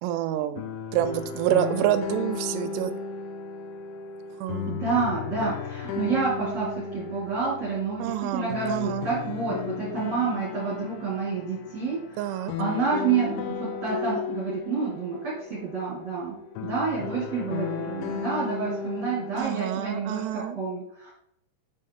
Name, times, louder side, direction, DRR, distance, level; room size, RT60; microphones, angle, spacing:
voice 1, 0.0-2.9 4.4-4.7 8.0-9.1 12.2-12.5 19.3-20.6, right 12 dB, 85° right, 11 dB, 2.6 m, -28 dB
sound 1, 0.6-19.4, left 7 dB, 80° left, 2.5 m, -35 dB
voice 2, 4.7-12.0 12.3-16.4 16.6-21.1, right 5 dB, 45° right, -8 dB, 2.7 m, -29 dB
6.2 x 5.4 x 3.5 m, 0.75 s
omnidirectional pair, 4.8 m